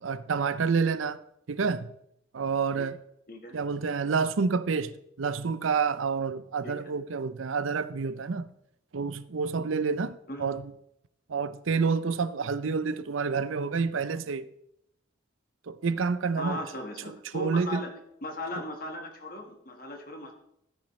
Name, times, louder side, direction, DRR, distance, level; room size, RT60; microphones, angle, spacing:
voice 1, 0.0-1.2 1.5-1.9 2.3-3.0 3.5-8.5 8.9-10.6 11.3-14.5 15.7-16.6 17.3-17.8, right 5 dB, 90° right, 0.5 m, -28 dB
voice 2, 16.4-17.9 18.2-20.3, left 1 dB, 45° left, 1.6 m, -38 dB
14.5 x 8.7 x 3.2 m
head